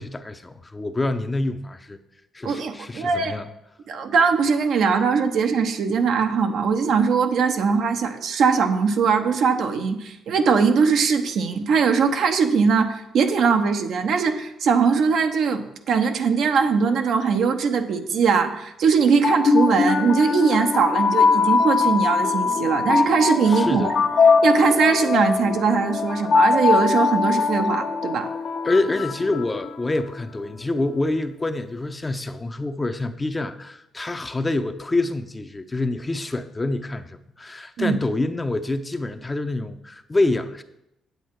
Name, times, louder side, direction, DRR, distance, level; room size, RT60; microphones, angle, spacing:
voice 1, 0.0-2.0 2.3-3.4 23.5-23.9 28.6-40.6, left 2 dB, 20° left, 9 dB, 0.7 m, -26 dB
voice 2, 2.4-3.4 3.9-23.9 24.4-28.3 37.8-38.0, right 5 dB, 70° right, 6 dB, 0.9 m, -21 dB
sound 1, 19.0-30.1, left 4 dB, 55° left, 0.8 m, -21 dB
8.2 x 8.0 x 4.7 m, 0.85 s
cardioid pair, 90°, 0 cm